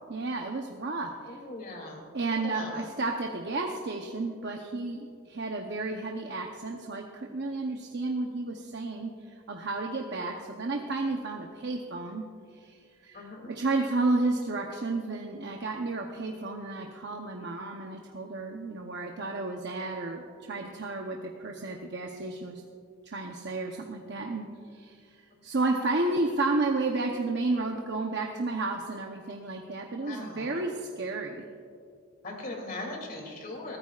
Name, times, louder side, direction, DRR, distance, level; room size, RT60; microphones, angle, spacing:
voice 1, 0.1-1.4 2.1-12.2 12.5-20.2 20.5-22.6 23.0-24.5 24.7-31.4, right 2 dB, 50° right, 1 dB, 0.8 m, -32 dB
voice 2, 1.3-2.0 2.3-2.9 13.1-13.5 30.0-30.6 32.2-33.8, left 2 dB, 40° left, 1 dB, 2.7 m, -39 dB
22.0 x 15.0 x 2.5 m, 2.3 s
head